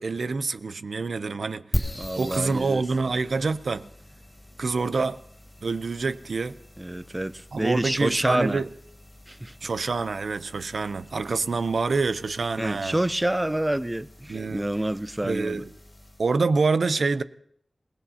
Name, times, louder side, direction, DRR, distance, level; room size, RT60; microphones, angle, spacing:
voice 1, 0.0-1.7 2.2-3.9 4.6-5.2 5.6-6.6 7.5-8.7 9.6-13.0 14.3-14.7 15.2-15.7 16.2-17.2, right 4 dB, 80° right, 0.6 m, -26 dB
sound 1, 1.7-16.4, equal, 15° left, 2.5 m, -40 dB
voice 2, 2.0-2.8 6.8-8.6 9.3-9.5 12.6-15.6, right 1 dB, 15° right, 0.5 m, -27 dB
27.5 x 18.0 x 2.8 m
wide cardioid pair, 95°, 0 cm